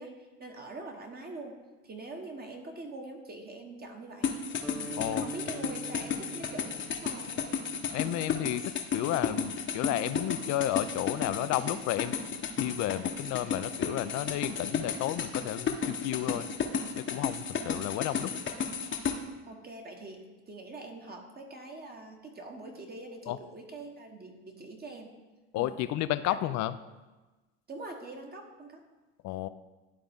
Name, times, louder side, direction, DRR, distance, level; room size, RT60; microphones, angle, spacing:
voice 1, 0.0-4.3 4.8-6.7 7.0-7.7 8.1-8.2 17.7-17.8 19.5-25.1 25.6-25.8 27.7-28.8, right 2 dB, 30° right, 3 dB, 1.2 m, -44 dB
sound 1, 4.2-19.2, left 6 dB, 35° left, 0.9 m, -33 dB
sound 2, 4.6-8.9, right 2 dB, 5° left, 0.8 m, -44 dB
voice 2, 7.9-12.2 12.6-16.5 17.0-18.3 23.3-23.4 25.5-26.8 29.2-29.5, left 13 dB, 55° left, 13 dB, 0.5 m, -32 dB
11.5 x 3.8 x 3.5 m, 1.2 s
supercardioid pair, 85°, 33 cm